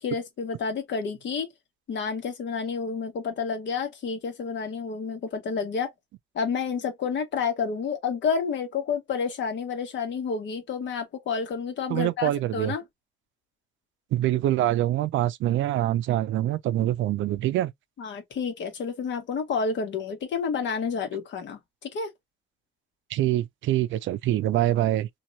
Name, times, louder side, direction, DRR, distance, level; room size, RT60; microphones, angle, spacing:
voice 1, 0.0-1.5 1.9-5.9 6.3-12.8 18.0-22.1, left 5 dB, 70° left, 1.4 m, -30 dB
voice 2, 11.9-12.7 14.1-17.7 23.1-25.1, right 13 dB, 75° right, 0.4 m, -25 dB
2.9 x 2.7 x 2.6 m
cardioid pair, 90°, 20 cm